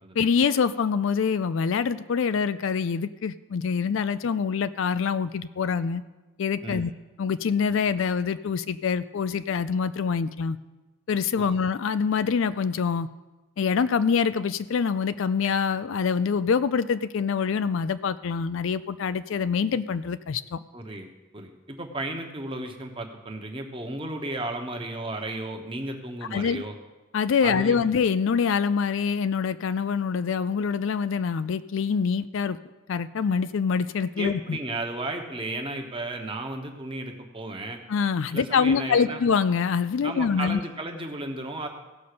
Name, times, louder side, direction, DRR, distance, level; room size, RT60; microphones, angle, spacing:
voice 1, 0.2-6.0 6.4-6.9 7.2-10.6 11.1-13.1 13.6-20.6 26.3-26.6 27.1-32.6 32.9-34.6 37.9-40.6, left 6 dB, 60° left, 13 dB, 0.4 m, -25 dB
voice 2, 20.7-21.1 21.3-26.7 27.4-27.8 34.2-37.8 38.3-39.2 40.0-41.7, right 2 dB, 25° right, 3 dB, 1.1 m, -34 dB
16.0 x 5.4 x 6.8 m, 1.1 s
head